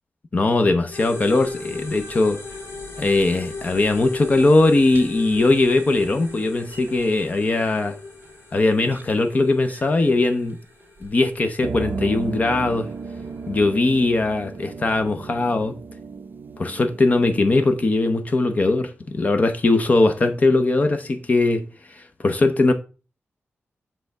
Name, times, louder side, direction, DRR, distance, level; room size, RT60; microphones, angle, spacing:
voice 1, 0.3-2.4 3.0-8.0 8.5-10.6 11.0-12.9 13.5-15.8 16.6-22.7, left 2 dB, 35° left, 0.6 m, -20 dB
sound 1, 0.9-14.6, left 3 dB, 65° left, 2.5 m, -38 dB
sound 2, 4.6-7.2 8.2-8.3 8.9-9.0 9.7-10.1 11.0-11.1 11.4-17.8, right 4 dB, 45° right, 0.5 m, -35 dB
7.7 x 3.5 x 6.5 m
wide cardioid pair, 175°, 5 cm